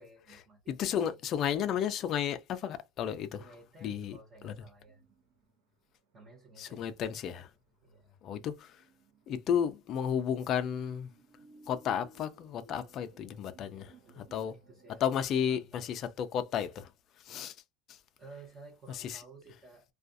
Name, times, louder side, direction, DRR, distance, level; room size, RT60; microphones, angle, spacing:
voice 1, 0.0-1.2 3.4-5.0 6.1-6.9 7.8-8.2 13.8-15.0 15.4-15.9 18.2-19.9, right 3 dB, 25° right, 1.0 m, -54 dB
voice 2, 0.7-3.5 3.8-4.2 4.4-4.6 6.6-7.5 8.2-8.9 9.3-11.1 11.6-14.5 15.0-17.6 17.9-18.0 18.9-19.2, left 8 dB, 30° left, 0.3 m, -33 dB
sound 1, 4.9-6.3 6.6-7.2 7.5-7.6 8.4-15.6, right 1 dB, 60° right, 0.8 m, -61 dB
2.4 x 2.3 x 2.5 m
cardioid pair, 175°, 0 cm